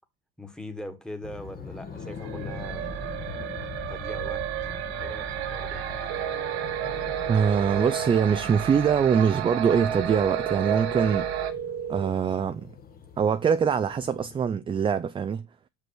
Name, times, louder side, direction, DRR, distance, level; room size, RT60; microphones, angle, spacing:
voice 1, 0.4-3.4 3.9-4.5 5.0-5.8, left 1 dB, ahead, 1.5 m, -41 dB
sound 1, 1.2-14.4, left 6 dB, 30° left, 1.2 m, -43 dB
sound 2, 2.0-11.5, right 10 dB, 85° right, 1.3 m, -32 dB
sound 3, 6.1-8.1 10.1-12.1, right 9 dB, 65° right, 0.9 m, -33 dB
voice 2, 7.3-11.3 11.9-12.7 13.2-15.4, right 7 dB, 15° right, 0.4 m, -23 dB
6.1 x 5.2 x 4.8 m
supercardioid pair, 100°, 31 cm